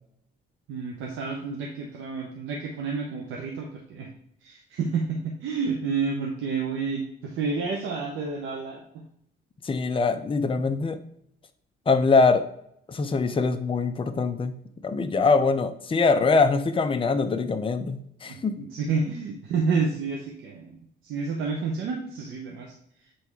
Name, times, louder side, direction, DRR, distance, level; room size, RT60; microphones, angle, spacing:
voice 1, 0.7-4.1 4.4-9.1 18.2-20.8 21.0-22.7, right 4 dB, 90° right, 0 dB, 1.0 m, -30 dB
voice 2, 9.6-11.0 11.9-12.4 12.9-14.6 14.8-18.6, left 4 dB, 25° left, 7 dB, 0.7 m, -23 dB
7.8 x 3.5 x 4.7 m, 0.71 s
cardioid pair, 90°, 20 cm